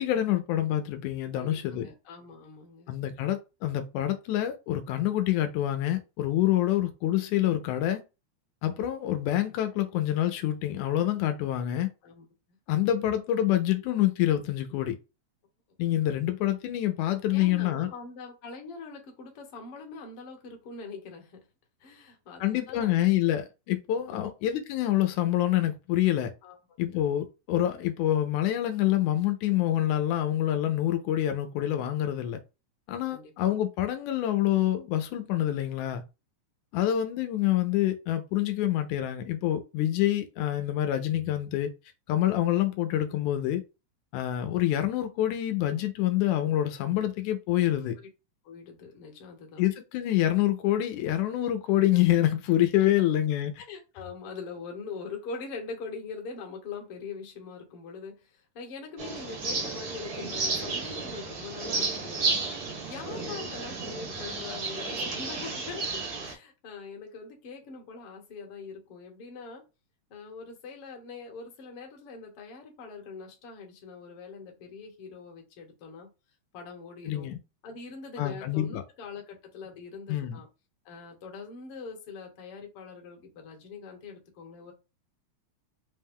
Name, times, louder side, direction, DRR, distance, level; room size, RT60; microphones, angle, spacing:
voice 1, 0.0-1.9 2.9-8.0 8.6-11.9 12.7-15.0 15.8-17.9 22.4-26.3 26.8-32.4 32.9-36.0 36.7-41.7 42.1-43.6 44.1-48.0 49.6-53.6 77.1-77.4 78.2-78.8 80.1-80.4, left 13 dB, 85° left, 1.9 m, -26 dB
voice 2, 1.4-2.9 12.0-12.2 17.3-21.5 21.8-22.9 24.1-24.3 26.4-26.6 26.9-27.0 33.1-33.5 48.4-49.6 53.7-69.6 70.1-76.1 76.5-77.3 77.6-80.5 80.8-84.7, left 4 dB, 60° left, 1.7 m, -43 dB
sound 1, 59.0-66.3, right 3 dB, 85° right, 0.8 m, -32 dB
5.0 x 2.1 x 3.5 m
omnidirectional pair, 3.4 m